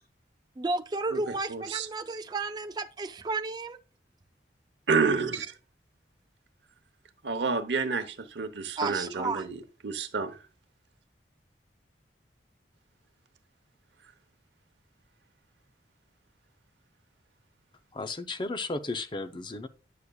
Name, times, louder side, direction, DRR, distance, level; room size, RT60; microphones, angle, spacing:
voice 1, 0.6-3.8 8.8-9.5, right 3 dB, 25° right, 0.3 m, -32 dB
voice 2, 1.5-1.9 4.9-5.5 7.2-10.4, right 4 dB, 90° right, 0.9 m, -29 dB
voice 3, 17.9-19.7, left 3 dB, 25° left, 0.5 m, -34 dB
9.8 x 6.4 x 2.3 m
head